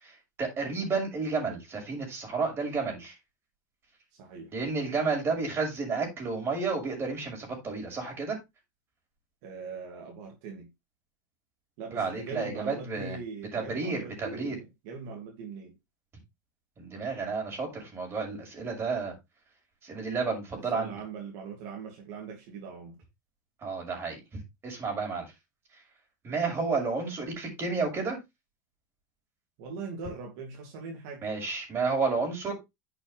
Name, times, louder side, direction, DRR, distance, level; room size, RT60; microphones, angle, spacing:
voice 1, 0.0-3.1 4.5-8.4 11.9-13.2 13.5-14.6 16.8-19.1 19.8-20.9 23.6-25.3 26.2-28.2 31.2-32.5, right 4 dB, 25° right, 6.3 m, -31 dB
voice 2, 4.2-4.6 9.4-10.7 11.8-15.8 20.5-22.9 29.6-31.2, right 5 dB, 60° right, 3.0 m, -41 dB
10.5 x 7.0 x 3.6 m
supercardioid pair, 150°, 10 cm